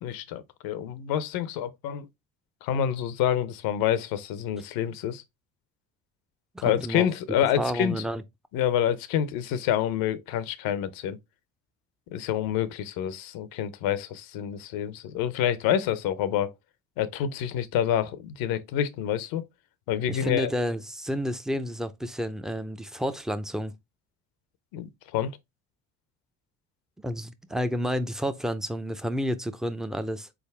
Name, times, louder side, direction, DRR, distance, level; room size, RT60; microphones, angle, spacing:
voice 1, 0.0-2.1 2.6-5.2 6.6-8.0 8.5-11.2 12.1-16.5 17.0-19.5 19.9-20.5 24.7-25.4, left 10 dB, 70° left, 0.7 m, -27 dB
voice 2, 6.5-7.1 7.6-8.2 20.1-23.7 27.0-30.3, equal, ahead, 0.6 m, -30 dB
4.0 x 3.6 x 3.2 m
hypercardioid pair, 65°, 37 cm